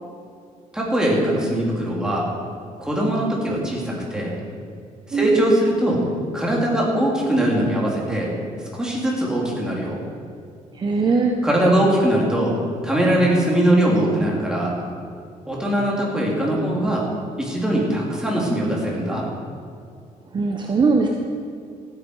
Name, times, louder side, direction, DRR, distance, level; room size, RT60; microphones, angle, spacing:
voice 1, 0.7-2.3 2.8-4.4 5.1-6.0 6.3-8.3 8.7-10.0 11.4-12.5 12.8-14.7 15.5-17.1 17.4-19.3, right 1 dB, 5° right, -4 dB, 3.5 m, -21 dB
voice 2, 5.1-5.5 10.7-11.3 20.3-21.1, right 4 dB, 35° right, 2 dB, 1.0 m, -20 dB
16.0 x 9.8 x 4.9 m, 2.3 s
cardioid pair, 110°, 13 cm